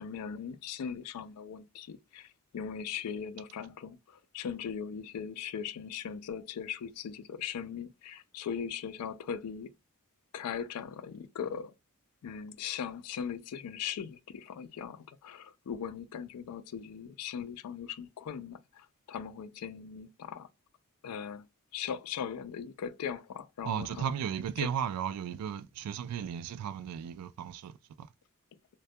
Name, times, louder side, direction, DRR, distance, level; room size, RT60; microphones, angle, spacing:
voice 1, 0.0-2.3 2.5-4.0 4.3-9.7 10.3-11.7 12.2-18.6 19.1-20.5 21.0-21.4 21.7-23.9 24.6-24.7, left 7 dB, 80° left, 0.3 m, -39 dB
voice 2, 23.6-28.1, right 8 dB, 80° right, 0.3 m, -35 dB
2.2 x 2.1 x 2.6 m
head